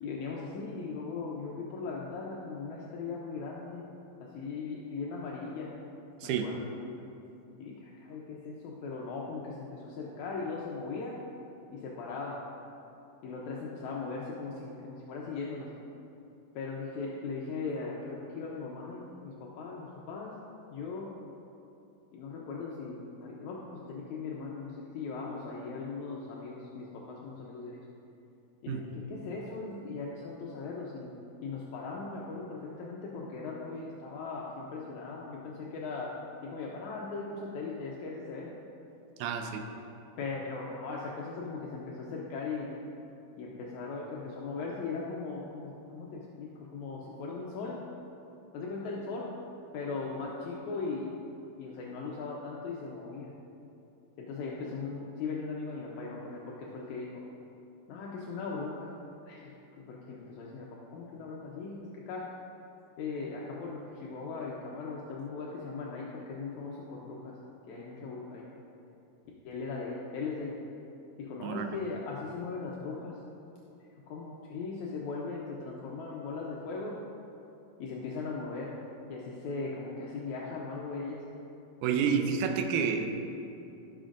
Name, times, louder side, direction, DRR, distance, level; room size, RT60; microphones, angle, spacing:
voice 1, 0.0-3.8 4.2-5.7 6.4-6.6 7.6-11.2 11.7-12.4 13.2-15.7 16.6-20.4 20.7-21.1 22.1-23.6 23.9-27.8 28.6-31.1 31.4-36.1 36.4-38.5 40.2-42.7 43.4-47.8 48.5-49.3 49.7-51.2 51.6-53.3 54.2-57.1 57.9-58.9 59.3-62.3 63.0-67.3 67.7-68.4 69.5-70.5 71.2-73.2 74.1-77.0 77.8-78.7 79.1-81.2 81.9-82.2, left 4 dB, 80° left, -3 dB, 1.7 m, -39 dB
voice 2, 39.2-39.6 71.4-71.8 81.8-83.2, right 7 dB, 80° right, 5 dB, 1.8 m, -29 dB
15.0 x 6.0 x 2.5 m, 2.8 s
omnidirectional pair, 4.1 m